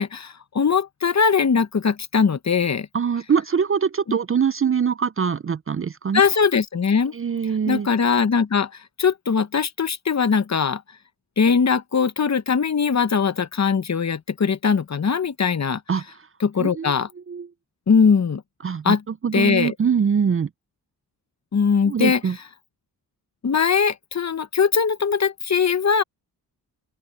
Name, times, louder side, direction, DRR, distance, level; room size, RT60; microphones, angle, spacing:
voice 1, 0.0-2.9 6.1-7.1 7.7-8.7 9.0-10.8 11.4-15.8 16.4-17.1 17.9-18.4 18.8-19.0 19.3-19.7 21.5-22.2 23.4-26.0, left 6 dB, 40° left, 1.1 m, -20 dB
voice 2, 2.9-6.2 7.1-7.9 15.9-16.0 16.6-16.9 17.3-17.5 18.6-20.5 21.9-22.4, right 6 dB, 30° right, 0.5 m, -23 dB
open air
cardioid pair, 60°, 41 cm